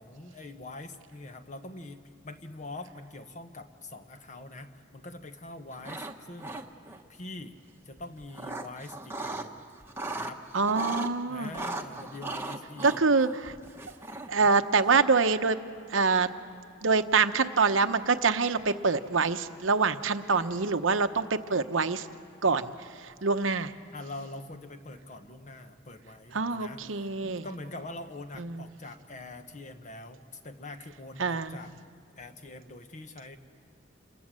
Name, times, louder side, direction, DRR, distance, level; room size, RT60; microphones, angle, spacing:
voice 1, 0.0-6.6 7.1-7.6 7.8-9.6 10.0-10.4 10.7-10.8 11.3-13.0 14.4-14.5 23.9-31.8 32.2-33.4, left 2 dB, 40° left, 8 dB, 1.2 m, -44 dB
sound 1, 5.7-6.1 6.4-7.0 8.0-9.5 9.8-11.1 11.5-14.4, right 2 dB, 10° right, 1.1 m, -37 dB
voice 2, 10.5-11.5 12.8-13.6 14.3-15.6 15.9-16.3 16.8-22.1 22.4-23.7 26.3-27.5 28.4-28.6 31.2-31.6, right 4 dB, 90° right, 9 dB, 1.0 m, -25 dB
28.0 x 21.0 x 7.7 m, 2.6 s
head